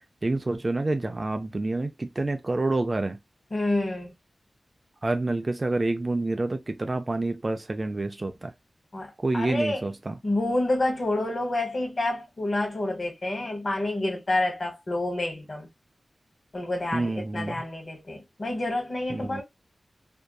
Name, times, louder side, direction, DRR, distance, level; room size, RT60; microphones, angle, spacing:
voice 1, 0.2-3.2 5.0-8.5 9.2-10.2 16.9-17.6 19.1-19.4, right 2 dB, 35° right, 0.3 m, -28 dB
voice 2, 3.5-4.1 8.9-9.9 10.2-15.7 16.5-19.4, left 2 dB, 45° left, 1.2 m, -28 dB
2.6 x 2.3 x 2.2 m
wide cardioid pair, 95°, 0 cm